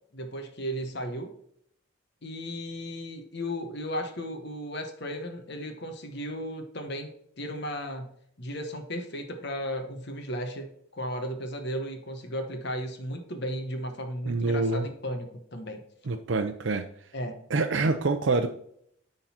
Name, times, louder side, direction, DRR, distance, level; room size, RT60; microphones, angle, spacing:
voice 1, 0.1-1.3 2.2-7.1 7.4-15.8 17.1-17.4, equal, 55° left, 5 dB, 1.1 m, -35 dB
voice 2, 14.3-14.9 16.1-16.8 17.5-18.5, right 3 dB, 60° right, 5 dB, 0.5 m, -26 dB
10.0 x 3.9 x 4.3 m, 0.69 s
head